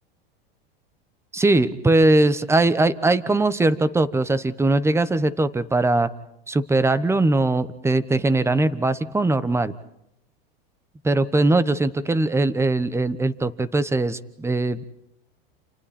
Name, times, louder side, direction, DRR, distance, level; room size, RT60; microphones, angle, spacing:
voice 1, 1.3-6.1 6.5-9.7 11.0-14.8, right 2 dB, 10° right, 15 dB, 1.1 m, -20 dB
29.5 x 28.5 x 4.3 m, 0.82 s
supercardioid pair, 115°, 30 cm